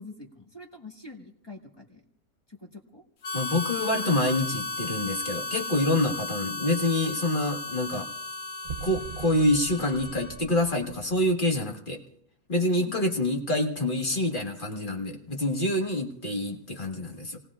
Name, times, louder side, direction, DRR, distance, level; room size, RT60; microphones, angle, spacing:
voice 1, 0.0-2.0 2.5-3.0 12.8-13.2, left 3 dB, 15° left, 1 dB, 1.7 m, -45 dB
Harmonica, 3.2-10.5, left 2 dB, 55° left, 1.0 m, -35 dB
voice 2, 3.3-8.1 8.8-12.0 12.5-17.4, left 1 dB, 35° left, 2 dB, 1.8 m, -26 dB
sound 1, 4.5-5.7 8.6-11.3, right 6 dB, 70° right, 1.2 m, -42 dB
29.0 x 18.0 x 2.4 m, 0.71 s
omnidirectional pair, 1.5 m